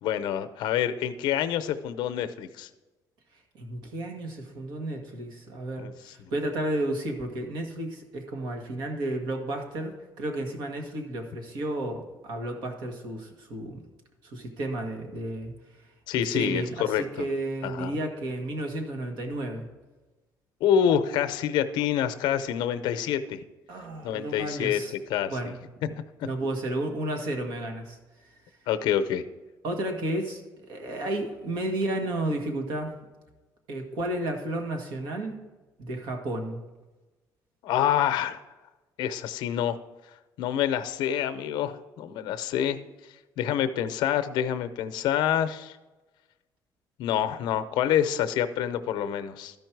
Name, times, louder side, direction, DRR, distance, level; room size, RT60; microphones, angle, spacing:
voice 1, 0.0-2.7 5.8-5.9 6.2-6.3 16.1-17.3 17.6-18.0 20.6-23.4 24.0-24.8 25.1-25.5 28.7-29.2 37.6-38.4 39.0-39.8 40.4-42.8 43.4-45.8 47.0-49.5, left 9 dB, 90° left, 10 dB, 0.6 m, -27 dB
voice 2, 3.5-13.8 14.2-15.5 16.1-19.7 23.7-24.9 25.3-25.5 26.2-28.0 29.6-33.0 33.7-35.4 35.8-36.6, right 1 dB, 75° right, 3 dB, 1.7 m, -32 dB
13.0 x 5.3 x 4.6 m, 1.2 s
cardioid pair, 155°, 7 cm